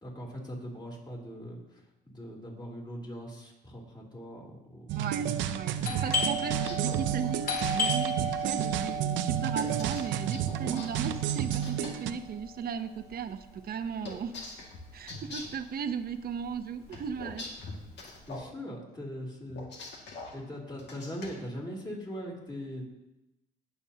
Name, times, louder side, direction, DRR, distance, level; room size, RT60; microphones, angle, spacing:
voice 1, 0.0-4.9 18.3-20.0 20.3-22.9, equal, 25° left, -2 dB, 3.1 m, -41 dB
sound 1, 4.9-12.1, right 10 dB, 90° right, 0.6 m, -31 dB
voice 2, 5.0-7.4 7.7-14.3 14.9-17.4, right 7 dB, 55° right, 9 dB, 0.8 m, -36 dB
Doorbell, 5.8-15.2 15.4-15.5 16.2-16.5 16.8-18.2, equal, 50° left, 3.2 m, -35 dB
sound 2, 6.4-7.9 9.6-11.9 14.0-15.6 16.9-18.5 19.5-20.3 20.8-21.3, left 3 dB, 70° left, 2.1 m, -43 dB
18.5 x 7.0 x 2.9 m, 0.94 s
cardioid pair, 100°, 19 cm